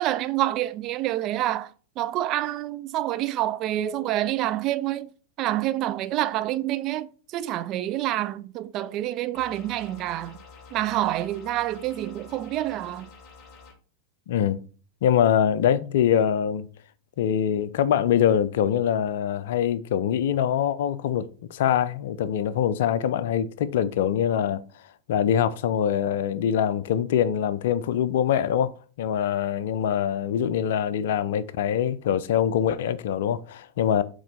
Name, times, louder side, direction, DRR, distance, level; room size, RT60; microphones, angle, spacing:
voice 1, 0.0-5.1 5.4-10.4 10.7-13.1, right 14 dB, 35° right, 0.4 m, -27 dB
sound 1, 9.3-13.7, left 5 dB, 30° left, 1.5 m, -48 dB
voice 2, 14.3-14.6 15.0-16.7 17.2-24.6 25.1-28.7 29.0-34.0, left 9 dB, 55° left, 0.4 m, -24 dB
7.3 x 3.1 x 4.1 m
figure-of-eight pair, 90°, 0 cm